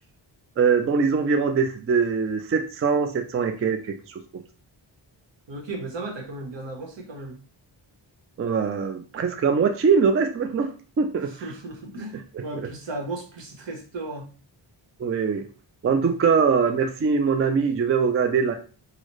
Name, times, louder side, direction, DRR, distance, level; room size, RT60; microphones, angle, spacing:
voice 1, 0.6-3.8 4.1-4.2 8.4-10.7 11.0-11.3 12.3-12.7 15.0-15.4 15.8-18.5, right 5 dB, 30° right, 6 dB, 0.4 m, -22 dB
voice 2, 5.5-7.4 11.3-14.3, right 2 dB, 70° right, 2 dB, 1.1 m, -35 dB
3.9 x 2.0 x 3.1 m, 0.37 s
wide cardioid pair, 90°, 45 cm